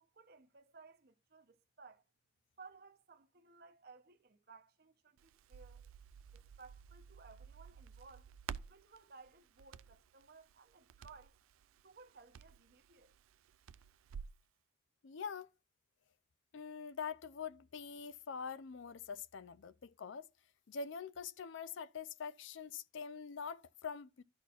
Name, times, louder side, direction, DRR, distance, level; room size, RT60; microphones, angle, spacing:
voice 1, 0.0-2.0 2.6-5.9 6.3-8.3 8.7-11.4 11.8-13.1, right 4 dB, 50° right, 0.8 m, -59 dB
Crackle, 5.2-14.4, right 7 dB, 85° right, 0.4 m, -53 dB
voice 2, 15.0-15.5 16.5-20.3 20.7-24.2, left 6 dB, 65° left, 0.4 m, -44 dB
13.0 x 4.3 x 2.4 m
head